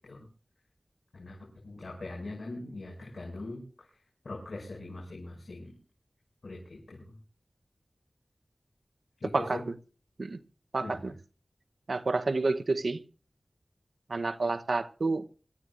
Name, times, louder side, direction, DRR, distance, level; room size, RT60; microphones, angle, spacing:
voice 1, 1.1-3.9 4.2-5.7 6.4-7.2 9.2-9.6 10.8-11.1, left 2 dB, 85° left, 5.9 m, -41 dB
voice 2, 10.7-11.1 11.9-13.0 14.1-15.2, right 3 dB, 80° right, 0.8 m, -29 dB
27.0 x 13.5 x 2.5 m
wide cardioid pair, 65°, 0 cm